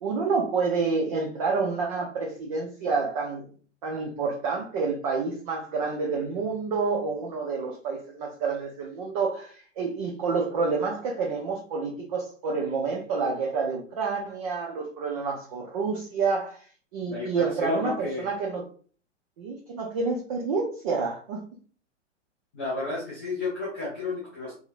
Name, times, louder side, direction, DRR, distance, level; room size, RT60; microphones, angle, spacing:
voice 1, 0.0-3.5 3.8-16.7 16.9-18.6 19.4-21.4, right 4 dB, 30° right, -2 dB, 0.6 m, -28 dB
voice 2, 17.1-18.2 22.5-24.5, left 3 dB, 10° left, -8 dB, 0.3 m, -32 dB
3.7 x 2.8 x 2.5 m, 0.41 s
figure-of-eight pair, 110°, 37 cm